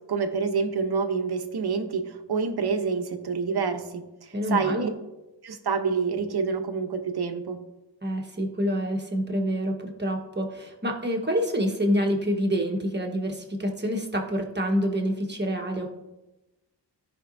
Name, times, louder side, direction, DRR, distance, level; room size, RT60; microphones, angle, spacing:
voice 1, 0.1-4.9 5.4-7.6, right 5 dB, 60° right, 7 dB, 0.9 m, -27 dB
voice 2, 4.3-4.9 8.0-15.9, equal, 25° right, 1 dB, 1.2 m, -27 dB
15.0 x 5.2 x 2.6 m, 1.0 s
wide cardioid pair, 125°, 44 cm